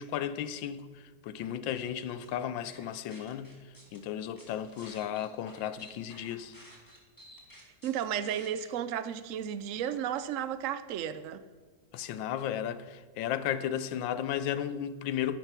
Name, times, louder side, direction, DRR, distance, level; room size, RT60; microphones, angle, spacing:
voice 1, 0.0-3.5 3.9-6.6 11.9-15.4, left 10 dB, 85° left, 1.4 m, -34 dB
sound 1, 1.8-2.3 2.7-4.0 4.4-8.7, equal, 10° left, 2.1 m, -54 dB
voice 2, 7.8-11.4, right 9 dB, 75° right, 0.7 m, -33 dB
11.5 x 10.0 x 6.0 m
omnidirectional pair, 2.0 m